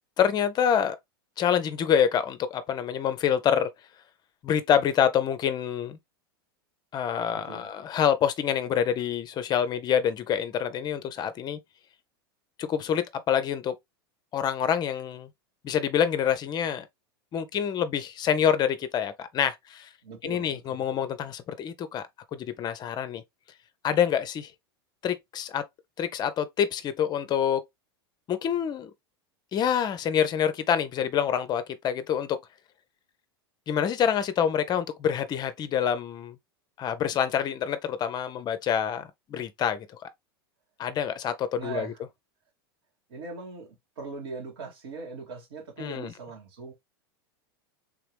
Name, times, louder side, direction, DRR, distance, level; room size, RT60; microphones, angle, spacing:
voice 1, 0.2-1.0 1.4-3.7 4.4-6.0 6.9-11.6 12.6-13.8 14.3-15.3 15.6-16.9 17.3-19.9 20.2-22.0 22.3-23.2 23.8-24.5 25.0-25.6 26.0-27.6 28.3-28.9 29.5-32.4 33.7-36.4 36.8-40.1 40.8-41.9 45.8-46.1, left 8 dB, 35° left, 0.6 m, -26 dB
voice 2, 7.3-7.7 20.0-20.8 41.6-42.0 43.1-46.7, right 4 dB, 70° right, 2.1 m, -40 dB
3.6 x 2.9 x 3.2 m
hypercardioid pair, 95°, 13 cm